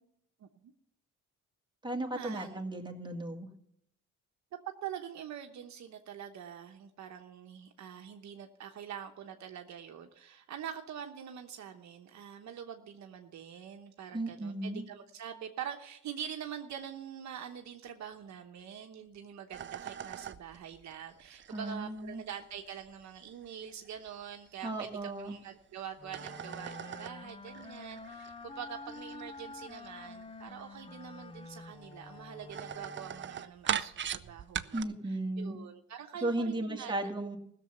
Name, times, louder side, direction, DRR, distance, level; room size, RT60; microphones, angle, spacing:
voice 1, 0.4-0.7 2.1-2.6 4.8-37.1, right 9 dB, 65° right, 5 dB, 1.0 m, -45 dB
voice 2, 1.8-3.5 14.1-14.8 21.5-22.2 24.6-25.4 34.7-35.6 36.2-37.4, right 1 dB, 15° right, 1 dB, 2.0 m, -35 dB
sound 1, 19.5-25.5 25.9-34.8, right 9 dB, 40° right, 0.6 m, -42 dB
sound 2, 26.0-33.4, left 3 dB, 20° left, 0.6 m, -48 dB
16.0 x 7.0 x 6.8 m, 0.73 s
cardioid pair, 90°, 30 cm